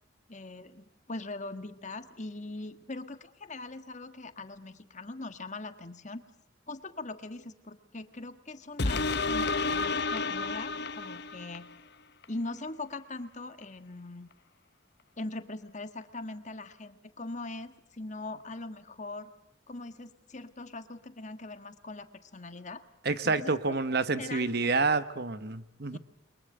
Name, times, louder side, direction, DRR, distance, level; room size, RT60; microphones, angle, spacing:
voice 1, 0.3-6.2 6.7-11.7 12.3-14.3 15.2-19.3 19.7-22.8 23.2-23.8 24.2-24.7 25.9-26.0, left 2 dB, 40° left, 9 dB, 1.5 m, -41 dB
sound 1, 8.8-11.7 12.2-12.3, left 3 dB, 60° left, 1.0 m, -30 dB
voice 2, 23.0-26.0, right 3 dB, 55° right, 13 dB, 1.2 m, -28 dB
29.5 x 22.5 x 7.9 m, 0.75 s
head